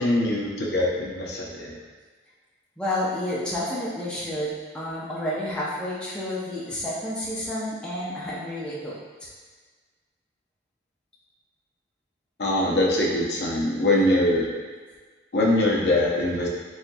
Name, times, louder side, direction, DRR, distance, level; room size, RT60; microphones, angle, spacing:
voice 1, 0.0-1.8 12.4-14.5 15.3-16.5, left 1 dB, 65° left, -3 dB, 0.7 m, -23 dB
voice 2, 2.8-9.0 9.2-9.3, left 1 dB, 5° left, -8 dB, 0.6 m, -30 dB
4.2 x 3.8 x 2.3 m, 1.4 s
head